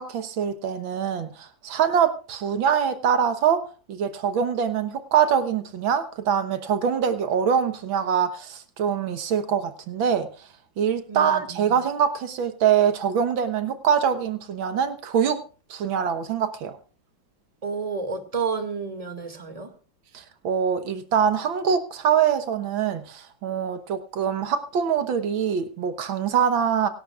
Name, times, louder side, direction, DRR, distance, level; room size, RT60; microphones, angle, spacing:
voice 1, 0.0-10.5 10.8-15.4 15.7-16.8 20.1-26.9, right 7 dB, 85° right, 10 dB, 2.0 m, -24 dB
voice 2, 11.1-11.7 17.6-19.7, right 5 dB, 20° right, 6 dB, 2.2 m, -30 dB
25.5 x 11.5 x 2.4 m, 0.38 s
omnidirectional pair, 2.1 m